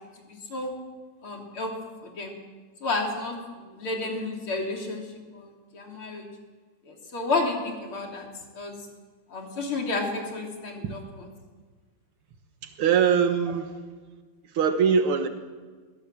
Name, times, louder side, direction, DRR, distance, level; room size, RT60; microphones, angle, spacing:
voice 1, 0.3-0.7 1.2-1.7 2.0-2.4 2.8-6.3 6.9-8.3 8.5-8.8 9.3-11.0, left 3 dB, 85° left, 1 dB, 4.1 m, -31 dB
voice 2, 12.6-13.7 14.4-15.3, right 7 dB, 85° right, 7 dB, 2.1 m, -22 dB
22.0 x 16.0 x 7.7 m, 1.5 s
omnidirectional pair, 2.3 m